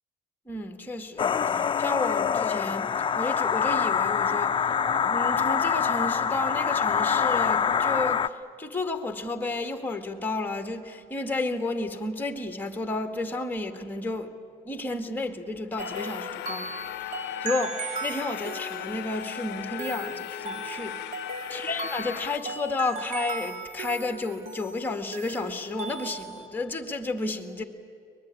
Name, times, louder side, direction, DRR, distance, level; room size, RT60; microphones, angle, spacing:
voice 1, 0.5-2.9 3.2-4.7 5.0-14.3 14.6-16.7 17.0-21.0 21.5-27.6, left 2 dB, 10° left, 7 dB, 2.0 m, -32 dB
sound 1, 1.2-8.3, left 7 dB, 30° left, 0.6 m, -25 dB
sound 2, 15.8-22.4, left 16 dB, 80° left, 0.5 m, -37 dB
sound 3, 15.8-26.5, right 3 dB, 55° right, 2.8 m, -37 dB
23.5 x 20.5 x 9.9 m, 2.4 s
cardioid pair, 110°, 17 cm